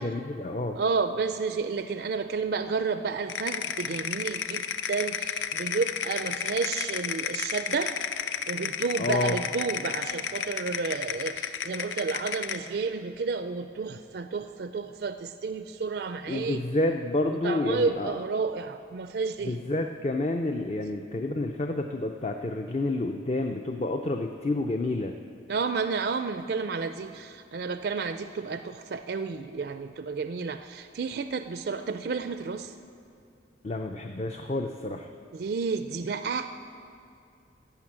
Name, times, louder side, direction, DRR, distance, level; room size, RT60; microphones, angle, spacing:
voice 1, 0.0-0.8 9.0-9.4 16.3-18.1 19.4-25.1 33.6-35.1, left 2 dB, 35° left, 4 dB, 0.5 m, -29 dB
voice 2, 0.7-7.9 8.5-16.6 17.3-19.6 25.5-32.7 35.3-36.5, right 4 dB, 55° right, 9 dB, 0.4 m, -31 dB
sound 1, 3.3-12.7, left 7 dB, 80° left, 0.6 m, -32 dB
15.5 x 6.6 x 8.7 m, 2.5 s
head